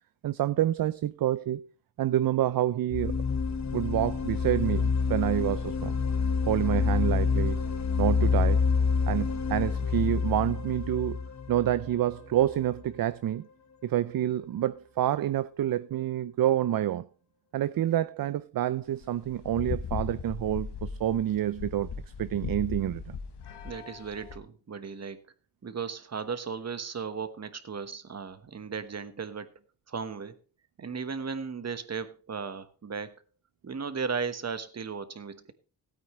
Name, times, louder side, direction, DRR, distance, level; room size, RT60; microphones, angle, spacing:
voice 1, 0.2-1.7 2.0-3.2 3.7-6.0 6.5-7.6 8.0-8.7 9.1-11.2 11.5-13.5 13.8-17.1 17.5-21.9 22.2-23.2, right 12 dB, 60° right, 0.5 m, -28 dB
sound 1, 2.9-12.7, left 5 dB, 40° left, 1.2 m, -27 dB
voice 2, 6.7-7.0 23.6-25.2 25.6-29.5 29.9-30.4 30.8-33.1 33.6-35.5, right 5 dB, 40° right, 1.3 m, -36 dB
sound 2, 18.9-24.4, left 6 dB, 75° left, 1.3 m, -38 dB
16.5 x 9.0 x 3.1 m
wide cardioid pair, 110°, 40 cm